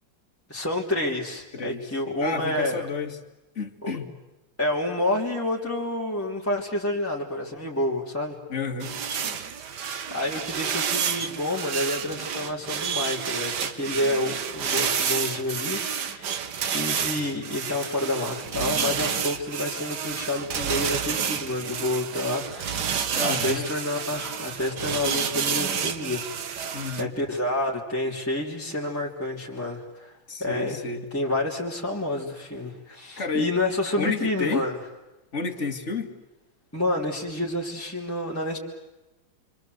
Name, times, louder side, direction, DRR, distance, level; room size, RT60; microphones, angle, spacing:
voice 1, 0.5-2.9 3.8-3.9 4.6-8.4 10.1-16.4 16.7-30.8 31.1-34.8 36.7-38.6, left 1 dB, 5° left, -4 dB, 3.1 m, -29 dB
voice 2, 2.2-3.2 3.6-4.1 8.5-8.9 23.1-23.7 26.7-27.1 30.3-31.0 33.2-33.5 34.0-34.7 35.3-36.1, left 4 dB, 35° left, 4 dB, 2.3 m, -30 dB
sound 1, 8.8-27.0, right 7 dB, 60° right, 1.8 m, -30 dB
29.5 x 24.5 x 8.0 m, 1.1 s
omnidirectional pair, 2.1 m